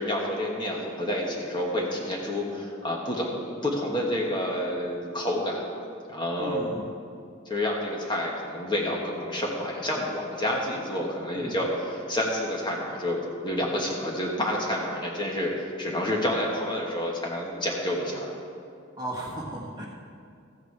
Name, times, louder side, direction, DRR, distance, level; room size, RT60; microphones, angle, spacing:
voice 1, 0.0-5.6 6.1-6.7 7.5-15.5 15.8-18.3, left 1 dB, 20° left, -2 dB, 1.4 m, -29 dB
voice 2, 6.4-6.9 11.3-11.5 19.0-19.9, right 1 dB, 20° right, -3 dB, 1.4 m, -35 dB
14.0 x 9.3 x 4.7 m, 2.4 s
head